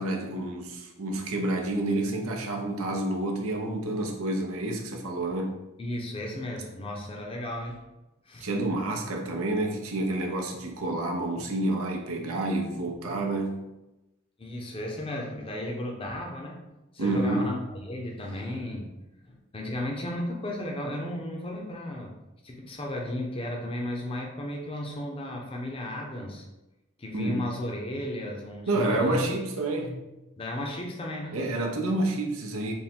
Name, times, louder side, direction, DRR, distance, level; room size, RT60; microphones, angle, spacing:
voice 1, 0.0-5.5 8.4-13.6 17.0-17.5 27.1-27.4 28.7-30.0 31.3-32.7, right 2 dB, 90° right, 1 dB, 0.7 m, -29 dB
voice 2, 5.8-7.8 8.3-8.5 14.4-16.6 16.9-18.9 19.2-22.1 22.4-26.5 27.0-29.2 30.4-31.4, left 1 dB, 25° left, 0 dB, 0.5 m, -34 dB
3.5 x 2.2 x 4.3 m, 0.98 s
head